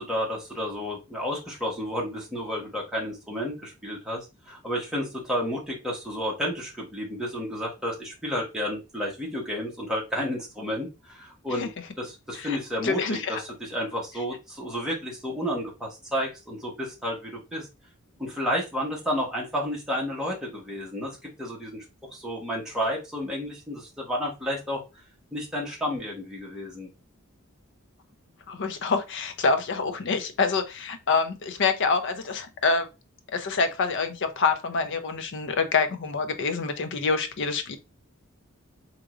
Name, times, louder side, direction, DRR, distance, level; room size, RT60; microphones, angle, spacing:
voice 1, 0.0-11.7 12.0-17.7 18.2-21.8 22.1-24.8 25.3-26.9, equal, 5° right, 1.2 m, -31 dB
voice 2, 12.8-13.4 28.5-32.9 33.3-37.8, left 4 dB, 60° left, 0.5 m, -26 dB
3.7 x 2.9 x 2.4 m
head